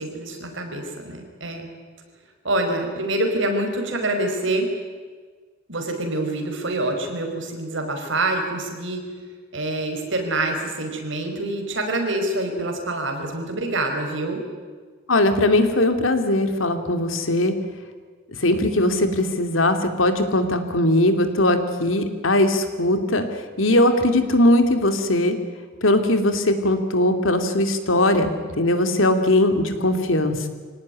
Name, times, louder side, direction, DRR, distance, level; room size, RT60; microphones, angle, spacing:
voice 1, 0.0-1.7 2.4-4.7 5.7-9.1 9.5-14.4, right 2 dB, 65° right, 3 dB, 4.9 m, -26 dB
voice 2, 15.1-17.5 18.4-23.3 23.6-25.4 25.8-28.3 28.6-30.4, left 1 dB, 80° left, 8 dB, 2.6 m, -20 dB
25.0 x 18.0 x 9.9 m, 1.5 s
head